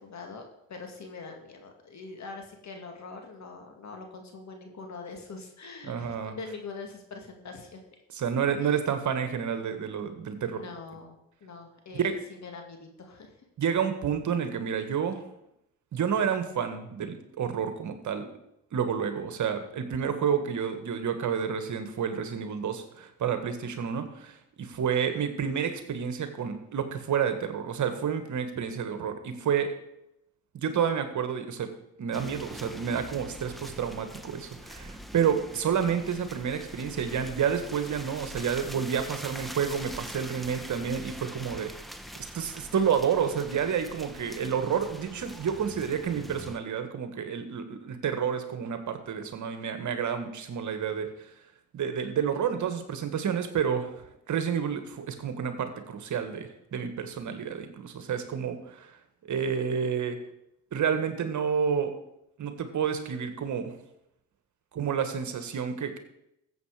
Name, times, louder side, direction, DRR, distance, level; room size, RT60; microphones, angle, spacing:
voice 1, 0.0-7.8 8.6-8.8 10.4-13.3, left 4 dB, 50° left, 3 dB, 2.3 m, -43 dB
voice 2, 5.8-6.4 8.1-10.6 11.9-12.1 13.6-15.2 15.9-18.2 18.7-29.7 30.5-31.7 32.0-41.7 42.3-51.1 51.7-58.9 59.3-60.2 60.7-61.9 62.4-63.7 64.7-66.0, right 7 dB, 55° right, 8 dB, 1.7 m, -29 dB
sound 1, 32.1-46.6, equal, ahead, 1.2 m, -43 dB
14.5 x 7.8 x 5.0 m, 0.81 s
supercardioid pair, 70°, 36 cm